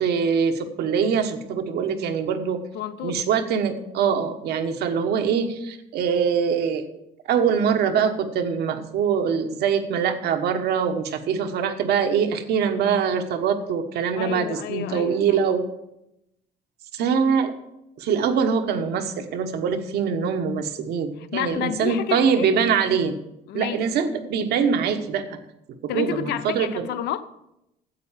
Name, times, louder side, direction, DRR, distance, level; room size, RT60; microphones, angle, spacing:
voice 1, 0.0-2.6 3.0-6.8 7.3-15.7 16.9-17.5 18.0-23.2 23.5-25.4 25.8-26.9, right 6 dB, 75° right, 1.3 m, -23 dB
voice 2, 2.7-3.3 14.2-15.2 21.2-22.7 23.5-23.8 25.9-27.2, left 10 dB, 80° left, 0.7 m, -30 dB
9.4 x 7.8 x 7.4 m
cardioid pair, 110°, 17 cm